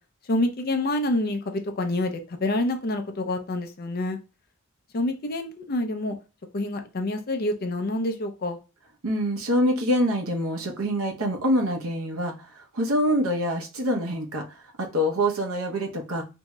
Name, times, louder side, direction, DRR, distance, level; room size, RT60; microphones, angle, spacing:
voice 1, 0.2-4.2 4.9-6.2 6.5-8.6, left 1 dB, 45° left, 6 dB, 0.5 m, -27 dB
voice 2, 9.0-14.4 14.8-16.2, equal, 85° right, 2 dB, 0.8 m, -25 dB
3.0 x 2.7 x 2.2 m, 0.30 s
head